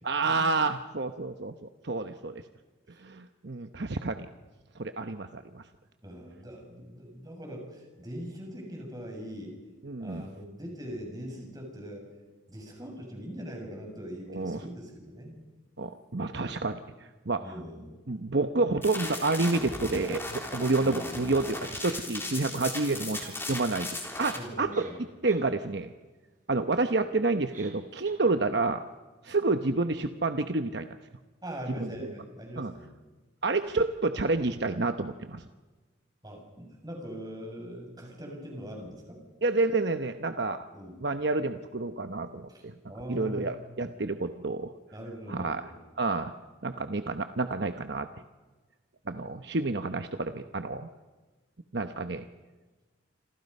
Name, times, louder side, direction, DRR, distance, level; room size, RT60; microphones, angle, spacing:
voice 1, 0.0-1.5 1.8-2.4 3.0-4.3 4.8-5.6 9.8-10.2 14.3-14.6 15.8-16.8 17.3-17.5 18.1-24.8 25.2-25.9 26.5-28.8 29.2-30.9 31.8-31.9 32.6-32.7 33.4-35.4 39.4-40.7 41.0-42.7 43.1-44.7 45.3-45.6 46.0-46.3 46.6-48.1 49.1-50.9 51.7-52.3, right 3 dB, 55° right, 8 dB, 1.0 m, -29 dB
voice 2, 6.0-9.6 10.0-12.1 12.5-15.3 17.4-18.0 20.8-21.2 24.3-25.0 31.4-32.9 36.2-39.2 40.7-41.0 42.5-43.9 44.9-45.8, equal, 20° right, 1 dB, 6.8 m, -41 dB
sound 1, 18.8-24.4, left 2 dB, 10° left, 3.6 m, -37 dB
sound 2, 23.2-23.7 24.4-24.5 24.7-25.5 25.8-25.9 27.5-27.8 28.0-28.2, right 5 dB, 40° right, 4.8 m, -49 dB
28.0 x 27.0 x 5.5 m, 1.2 s
head